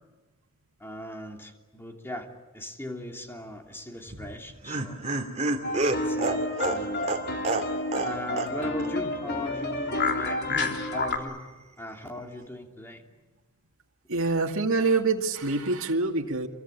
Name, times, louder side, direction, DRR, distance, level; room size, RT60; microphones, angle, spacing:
voice 1, 0.8-2.3 2.5-5.0 6.0-7.2 8.0-11.4 11.8-13.0, left 1 dB, 10° left, 3 dB, 2.9 m, -38 dB
Laughter, 4.1-8.1 8.4-8.5 8.8-8.9, right 2 dB, 35° right, 2.7 m, -29 dB
sound 1, 5.6-11.2, left 2 dB, 50° left, 3.2 m, -30 dB
voice 2, 14.1-16.5, right 3 dB, 65° right, 2 dB, 2.3 m, -25 dB
28.0 x 23.5 x 8.7 m, 1.2 s
head